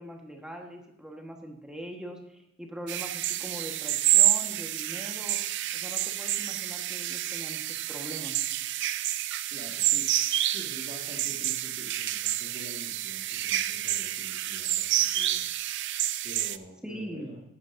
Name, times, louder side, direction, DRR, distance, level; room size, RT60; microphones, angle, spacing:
voice 1, 0.0-5.4 5.7-8.4 16.8-17.3, equal, 5° right, 1 dB, 1.4 m, -42 dB
sound 1, 2.9-16.6, right 14 dB, 60° right, 0.4 m, -29 dB
voice 2, 9.5-10.1 10.5-15.5 16.2-17.4, equal, 40° right, -5 dB, 1.8 m, -46 dB
14.0 x 9.7 x 2.7 m, 0.86 s
head